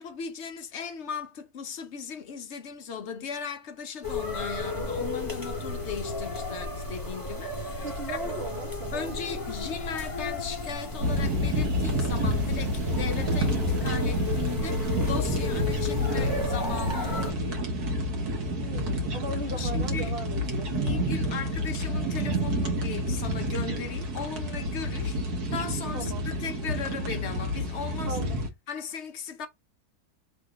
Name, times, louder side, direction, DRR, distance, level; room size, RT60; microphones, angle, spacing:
voice 1, 0.0-8.2 8.9-17.7 19.5-20.1 20.7-25.2 25.5-28.2 28.7-29.5, left 6 dB, 55° left, 0.9 m, -37 dB
sound 1, 4.0-17.3, left 2 dB, 15° left, 1.0 m, -34 dB
voice 2, 7.8-9.4 18.6-21.5 25.9-26.3 28.0-28.4, right 2 dB, 45° right, 1.1 m, -38 dB
sound 2, 11.0-28.5, equal, 85° right, 1.7 m, -29 dB
3.5 x 3.1 x 4.7 m
omnidirectional pair, 1.6 m